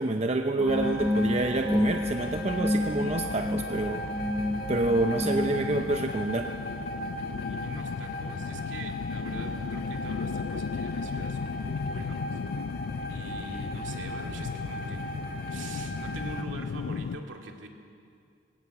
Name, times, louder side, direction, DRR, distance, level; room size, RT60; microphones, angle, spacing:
voice 1, 0.0-4.0 4.7-6.5, right 2 dB, 35° right, 5 dB, 0.7 m, -27 dB
sound 1, 0.6-5.9, left 1 dB, ahead, 0.8 m, -30 dB
sound 2, 0.7-16.4, left 1 dB, 55° left, 1.9 m, -37 dB
sound 3, 0.8-17.2, left 5 dB, 80° left, 0.4 m, -36 dB
voice 2, 7.3-12.4 13.1-15.1 15.4-17.7, right 2 dB, 70° right, 2 dB, 2.4 m, -43 dB
19.5 x 17.0 x 8.4 m, 2.4 s
head